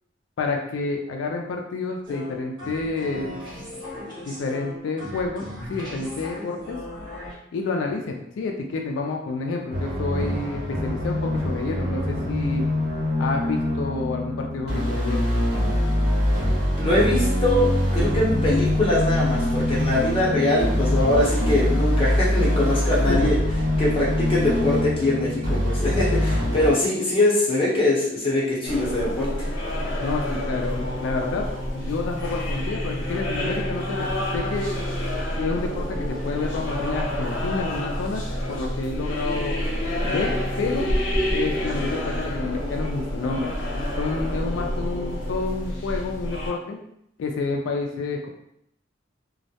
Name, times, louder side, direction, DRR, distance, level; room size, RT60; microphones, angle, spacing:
voice 1, 0.4-3.4 4.3-5.4 5.7-6.8 7.5-12.7 13.2-15.3 23.1-23.3 30.0-31.5 31.7-34.8 35.4-38.2 38.5-39.6 40.1-40.9 41.3-43.5 44.0-46.8 47.2-48.3, left 3 dB, 85° left, 2 dB, 0.3 m, -29 dB
sound 1, 2.0-7.3, left 1 dB, 25° right, 1.0 m, -37 dB
sound 2, 9.7-26.7, left 1 dB, 60° right, 1.0 m, -23 dB
voice 2, 16.7-23.4 23.8-29.5, left 1 dB, 30° left, -6 dB, 0.7 m, -22 dB
sound 3, 28.7-46.5, left 1 dB, 65° left, 0.7 m, -28 dB
2.2 x 2.1 x 2.7 m, 0.76 s
head